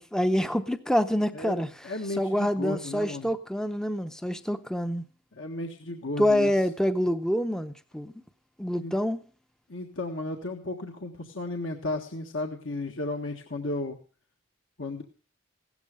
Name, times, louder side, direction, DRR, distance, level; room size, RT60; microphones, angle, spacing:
voice 1, 0.0-1.7 2.1-5.0 6.2-8.1 8.6-9.2, equal, 5° left, 11 dB, 0.6 m, -26 dB
voice 2, 1.3-3.3 5.3-6.5 8.8-8.9 9.7-14.0 14.8-15.0, left 2 dB, 65° left, 3 dB, 1.5 m, -34 dB
16.0 x 13.0 x 5.0 m, 0.38 s
head